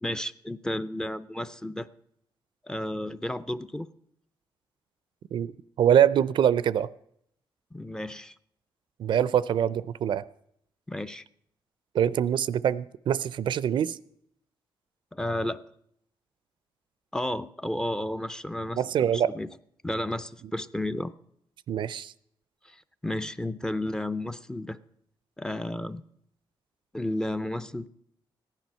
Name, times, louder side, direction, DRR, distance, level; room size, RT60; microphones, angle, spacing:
voice 1, 0.0-1.9 2.6-3.9 7.7-8.3 10.9-11.2 15.1-15.6 17.1-18.8 19.1-19.5 19.8-21.1 22.6-24.8 25.4-26.0 26.9-27.9, left 1 dB, 5° left, 12 dB, 0.5 m, -32 dB
voice 2, 5.8-6.9 9.0-10.2 11.9-14.0 18.8-19.3 21.7-22.1, right 9 dB, 65° right, 18 dB, 0.5 m, -24 dB
15.0 x 10.5 x 5.6 m, 0.72 s
cardioid pair, 135°, 9 cm